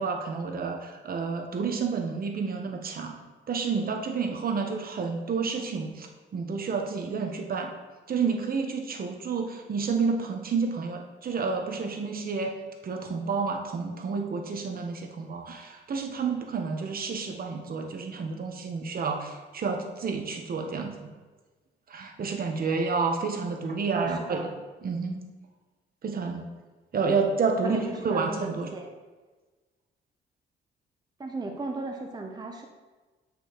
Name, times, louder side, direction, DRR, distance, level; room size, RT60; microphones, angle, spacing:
voice 1, 0.0-3.2 3.5-6.1 6.3-7.7 8.1-12.5 12.8-21.1 21.9-24.4 24.8-25.2 26.0-26.4 26.9-28.7, right 5 dB, 50° right, 3 dB, 1.0 m, -30 dB
voice 2, 23.9-24.5 27.6-28.9 31.2-32.6, right 3 dB, 20° right, 1 dB, 0.7 m, -35 dB
8.5 x 5.2 x 3.0 m, 1.3 s
cardioid pair, 90°, 20 cm